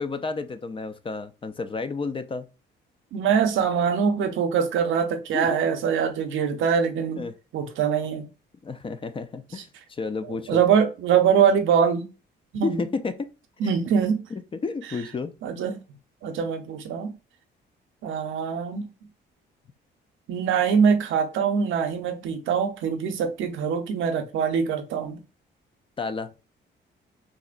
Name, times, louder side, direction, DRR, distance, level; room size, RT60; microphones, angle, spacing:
voice 1, 0.0-2.5 5.3-5.6 7.2-7.3 8.6-10.6 12.6-13.3 14.3-15.3 26.0-26.3, left 4 dB, 25° left, 0.4 m, -31 dB
voice 2, 3.1-7.2 7.5-8.3 10.5-12.1 12.5-12.8 13.6-14.2 15.4-15.8 16.2-17.1 18.0-18.9 20.3-25.2, right 7 dB, 80° right, 0.6 m, -23 dB
3.7 x 2.1 x 2.4 m
cardioid pair, 90°, 20 cm